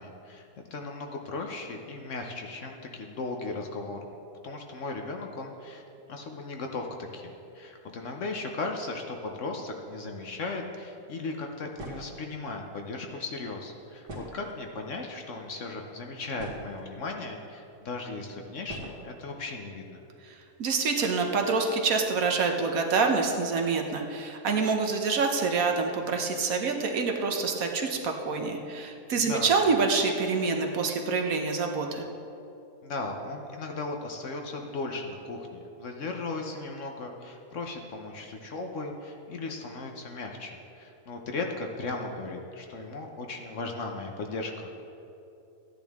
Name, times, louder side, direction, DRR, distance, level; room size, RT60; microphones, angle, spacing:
voice 1, 0.0-4.0 4.4-5.8 6.1-6.9 7.1-20.0 29.2-29.5 32.8-44.8, left 3 dB, 55° left, 2 dB, 1.1 m, -37 dB
sound 1, 11.8-12.2 14.0-14.8 15.6-15.7 16.1-16.9 17.8-17.9 18.7-19.0, right 1 dB, 90° right, 2.4 m, -41 dB
voice 2, 20.6-32.0, right 4 dB, 65° right, 3 dB, 1.3 m, -26 dB
14.0 x 10.0 x 3.5 m, 2.8 s
omnidirectional pair, 1.7 m